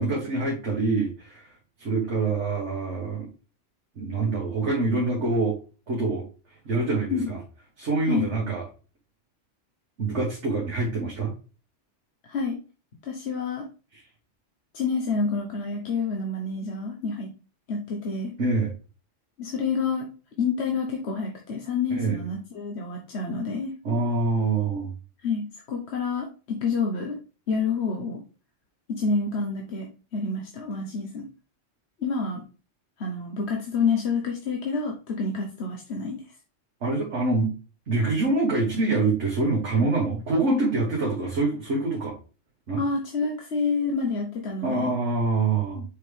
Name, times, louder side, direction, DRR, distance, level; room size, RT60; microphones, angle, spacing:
voice 1, 0.0-1.5 1.8-3.3 4.0-5.6 5.9-6.3 6.7-7.4 7.8-8.6 10.0-11.3 13.9-14.0 18.4-18.7 21.9-22.2 23.8-24.9 36.8-37.5 37.9-42.2 42.7-42.8 44.6-45.8, right 3 dB, 70° right, -3 dB, 1.7 m, -25 dB
voice 2, 12.2-12.6 13.0-13.7 14.7-17.3 17.7-18.3 19.4-20.1 20.4-23.7 25.2-27.2 27.5-28.2 28.9-31.3 32.0-32.4 33.0-36.2 42.8-44.9 45.7-45.8, left 4 dB, 60° left, 1 dB, 1.2 m, -28 dB
6.8 x 4.9 x 3.3 m, 0.35 s
omnidirectional pair, 1.2 m